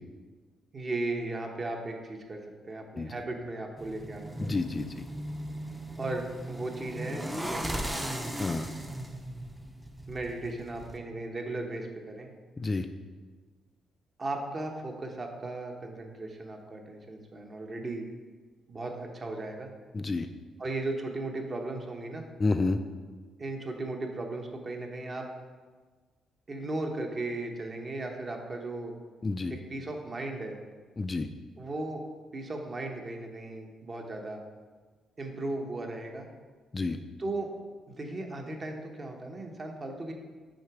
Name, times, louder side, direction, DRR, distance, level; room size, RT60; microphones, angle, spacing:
voice 1, 0.7-4.7 6.0-8.1 10.1-12.3 14.2-18.1 18.7-19.7 20.6-22.3 23.4-25.3 26.5-28.9 29.5-30.6 31.6-32.0 32.3-34.4 35.2-36.3 37.2-37.5 37.9-40.1, right 2 dB, 35° right, 3 dB, 0.9 m, -36 dB
sound 1, 3.8-11.0, right 1 dB, 10° right, 0.6 m, -37 dB
voice 2, 4.4-5.0 8.4-8.7 12.6-12.9 19.9-20.3 22.4-22.8 29.2-29.6 31.0-31.3 36.7-37.0, left 3 dB, 25° left, 8 dB, 0.3 m, -29 dB
6.3 x 3.9 x 4.7 m, 1.4 s
cardioid pair, 90°, 0 cm